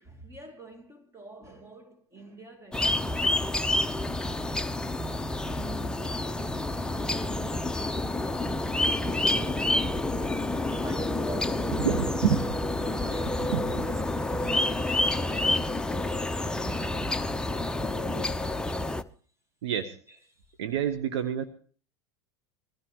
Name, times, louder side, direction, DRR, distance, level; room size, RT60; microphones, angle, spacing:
voice 1, 0.0-4.7 5.4-12.4 12.8-15.9 16.3-18.8 20.1-20.2 20.5-20.6, right 1 dB, 20° right, 2.8 m, -47 dB
sound 1, 2.7-19.0, left 2 dB, 5° left, 0.8 m, -28 dB
voice 2, 11.8-13.1 13.5-13.9 19.6-20.0 20.6-21.4, right 9 dB, 75° right, 1.2 m, -29 dB
21.5 x 15.5 x 3.0 m
hypercardioid pair, 90°, 14 cm